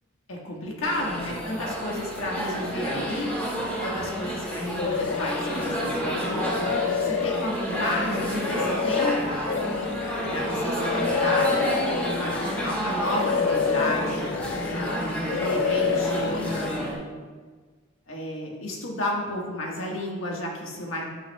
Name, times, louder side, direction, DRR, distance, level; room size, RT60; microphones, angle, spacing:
voice 1, 0.3-6.6 7.0-9.5 10.2-11.7 11.9-14.3 14.7-17.0 18.1-21.1, left 1 dB, 85° left, -1 dB, 1.5 m, -32 dB
sound 1, 0.8-16.9, equal, 10° left, 2.0 m, -30 dB
sound 2, 4.8-5.7 6.1-12.8 13.0-15.0 15.3-16.7, left 6 dB, 65° left, 0.3 m, -28 dB
9.0 x 8.5 x 2.3 m, 1.5 s
head